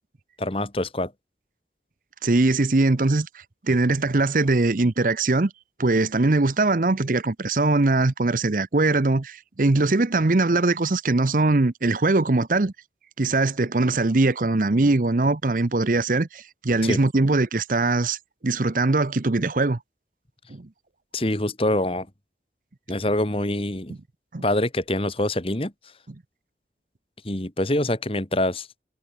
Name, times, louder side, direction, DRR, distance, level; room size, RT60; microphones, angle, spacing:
voice 1, 0.4-1.1 16.8-17.0 21.1-22.1 22.9-24.0 24.4-25.7 27.2-28.7, left 1 dB, 30° left, 2.0 m, -25 dB
voice 2, 2.2-5.5 5.8-12.7 13.2-18.2 18.4-19.8 20.5-20.7 24.3-24.4, right 2 dB, 45° right, 0.7 m, -21 dB
head